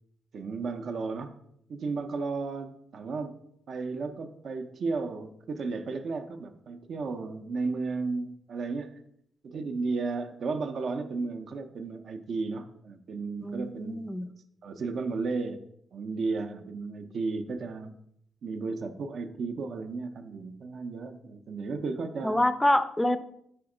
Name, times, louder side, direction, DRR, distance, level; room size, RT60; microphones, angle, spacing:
voice 1, 0.3-1.4 1.7-3.3 3.7-9.0 9.4-14.3 14.6-15.6 15.9-17.9 18.4-22.4, right 4 dB, 60° right, 6 dB, 0.5 m, -34 dB
voice 2, 13.4-14.3 22.2-23.2, left 1 dB, 10° left, 12 dB, 0.4 m, -26 dB
5.0 x 4.3 x 4.8 m, 0.71 s
cardioid pair, 105°, 0 cm